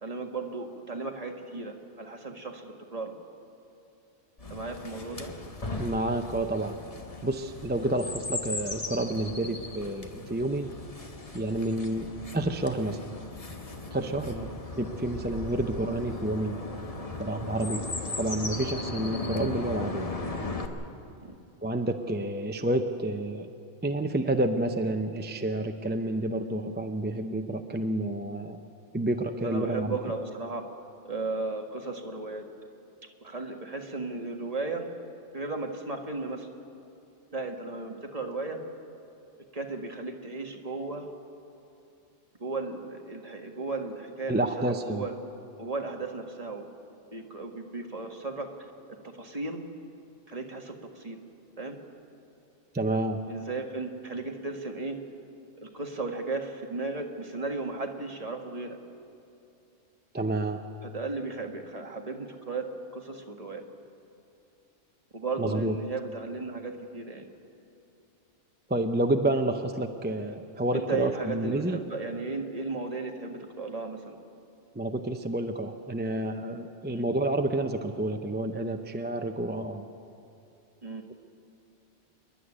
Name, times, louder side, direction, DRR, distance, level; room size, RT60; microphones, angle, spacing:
voice 1, 0.0-3.1 4.5-5.3 11.9-12.0 14.3-14.5 21.2-21.4 29.4-30.7 31.1-32.4 33.2-34.9 35.3-36.5 37.3-38.6 39.5-41.1 42.4-45.2 45.6-46.6 47.1-48.5 49.2-49.6 50.3-51.2 51.6-51.8 53.3-55.0 55.6-58.8 60.8-63.6 65.1-67.3 70.7-74.2 76.9-77.0 80.8-81.0, right 3 dB, 30° right, 2 dB, 1.7 m, -35 dB
Chirp tweet, 4.4-20.7, left 2 dB, 30° left, 1.3 m, -37 dB
voice 2, 5.8-6.8 7.2-10.7 11.3-13.0 13.9-16.6 17.2-17.9 18.2-20.1 21.6-23.5 23.8-28.6 28.9-30.0 44.3-45.1 52.7-53.2 60.1-60.6 65.4-65.7 68.7-71.8 74.7-79.9, right 1 dB, 10° right, 6 dB, 0.5 m, -29 dB
27.0 x 11.0 x 10.0 m, 2.6 s
omnidirectional pair, 1.3 m